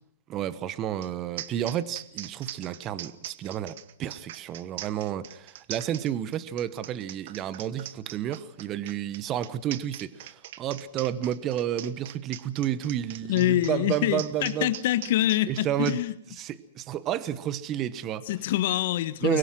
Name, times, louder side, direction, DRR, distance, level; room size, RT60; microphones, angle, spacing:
voice 1, 0.3-14.7 15.5-16.0 16.3-18.5 19.2-19.4, right 11 dB, 30° right, 1.1 m, -31 dB
sound 1, 1.0-1.1 1.4-16.0, right 13 dB, 55° right, 1.2 m, -41 dB
voice 2, 13.3-16.1 18.3-19.4, left 14 dB, 55° left, 1.3 m, -25 dB
24.5 x 21.5 x 6.2 m
hypercardioid pair, 135°, 0 cm